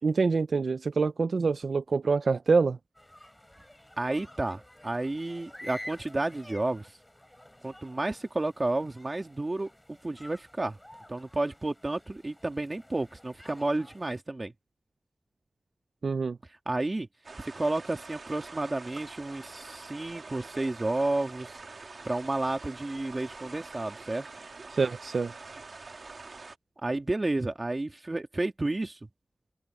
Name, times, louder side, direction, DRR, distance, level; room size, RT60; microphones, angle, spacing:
voice 1, 0.0-2.8 16.0-16.4 24.7-25.3, right 4 dB, 90° right, 0.4 m, -26 dB
sound 1, 2.9-14.2, left 1 dB, 10° left, 3.4 m, -50 dB
voice 2, 4.0-6.9 7.6-10.8 11.1-14.5 16.7-17.1 17.6-21.6 22.0-24.3 26.8-29.1, right 2 dB, 35° right, 2.4 m, -31 dB
sound 2, 17.2-26.6, right 3 dB, 70° right, 2.2 m, -45 dB
wide cardioid pair, 90°, 0 cm